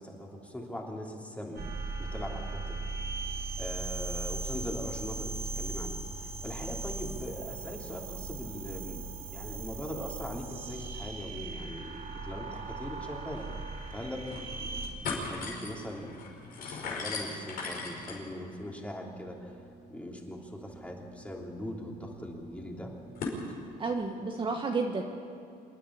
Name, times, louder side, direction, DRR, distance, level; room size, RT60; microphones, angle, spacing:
voice 1, 0.0-1.6 2.0-2.8 3.6-9.0 9.3-13.5 13.9-16.2 16.6-19.6 19.9-22.9, left 1 dB, 10° left, 0 dB, 3.1 m, -41 dB
sound 1, 1.6-14.9, right 3 dB, 60° right, 3.4 m, -38 dB
sound 2, 13.0-13.1 13.4-13.5 14.0-14.5 14.8-23.4, left 3 dB, 60° left, 4.8 m, -41 dB
voice 2, 23.8-25.0, right 4 dB, 30° right, 3 dB, 1.3 m, -31 dB
26.5 x 10.0 x 9.8 m, 2.4 s
cardioid pair, 110°, 17 cm